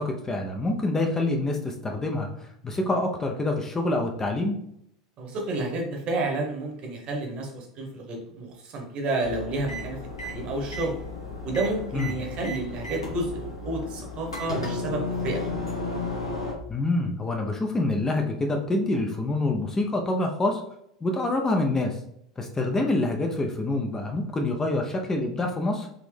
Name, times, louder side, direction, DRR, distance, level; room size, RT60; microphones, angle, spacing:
voice 1, 0.0-4.6 11.9-12.1 16.7-20.6 21.0-22.0 22.4-25.9, left 2 dB, 20° left, 2 dB, 0.5 m, -26 dB
voice 2, 5.2-10.9 11.4-15.4, right 2 dB, 40° right, 2 dB, 1.0 m, -30 dB
sound 1, 9.2-16.5, left 2 dB, 85° left, 1.0 m, -34 dB
3.8 x 2.9 x 3.2 m, 0.73 s
figure-of-eight pair, 80°, 3 cm